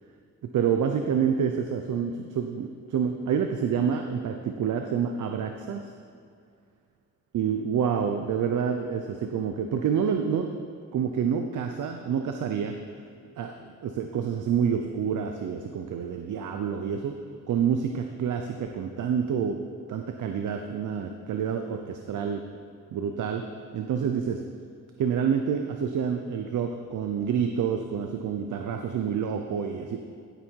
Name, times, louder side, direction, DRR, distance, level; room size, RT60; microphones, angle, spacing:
voice 1, 0.4-5.9 7.3-10.5 10.9-12.7 13.4-17.1 17.5-19.6 19.9-22.4 22.9-23.4 23.7-24.4 25.0-30.0, right 7 dB, 80° right, 5 dB, 0.8 m, -28 dB
15.5 x 9.2 x 4.7 m, 2.3 s
wide cardioid pair, 155°, 30 cm